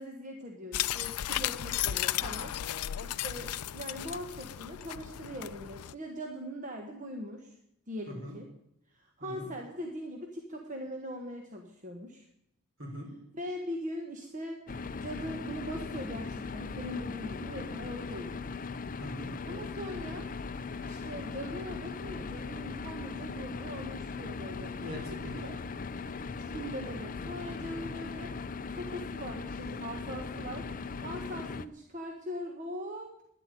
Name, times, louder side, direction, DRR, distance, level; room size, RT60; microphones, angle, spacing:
voice 1, 0.0-2.5 3.0-7.6 7.9-8.5 8.9-12.3 13.3-14.6 15.0-18.4 19.5-20.3 20.8-24.8 26.5-28.3 28.7-30.7 31.0-33.2, equal, 35° right, 2 dB, 1.3 m, -41 dB
sound 1, 0.7-5.9, left 12 dB, 90° left, 0.4 m, -34 dB
voice 2, 12.8-13.1 19.0-19.3 24.8-25.6, equal, 60° right, 0 dB, 5.2 m, -42 dB
sound 2, 14.7-31.7, left 4 dB, 40° left, 0.5 m, -39 dB
12.0 x 10.5 x 9.1 m, 0.79 s
head